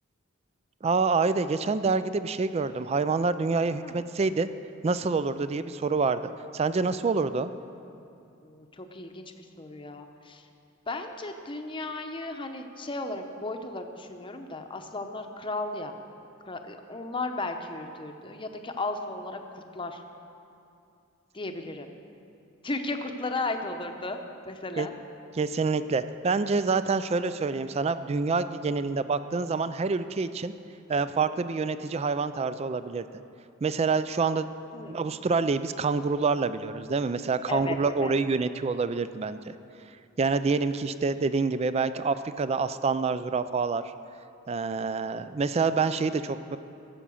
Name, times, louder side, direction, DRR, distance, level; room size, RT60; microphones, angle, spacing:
voice 1, 0.8-4.5 4.8-7.5 24.8-24.9 25.3-30.5 30.9-33.1 33.6-34.5 34.9-39.4 40.2-43.8 44.5-46.6, right 4 dB, 30° right, 12 dB, 0.3 m, -27 dB
voice 2, 8.4-10.5 10.9-15.9 16.5-20.0 21.3-21.9 22.6-24.2 24.5-24.9 34.7-35.0 37.5-38.2, left 2 dB, 25° left, 5 dB, 0.8 m, -35 dB
16.0 x 7.4 x 7.0 m, 2.6 s
head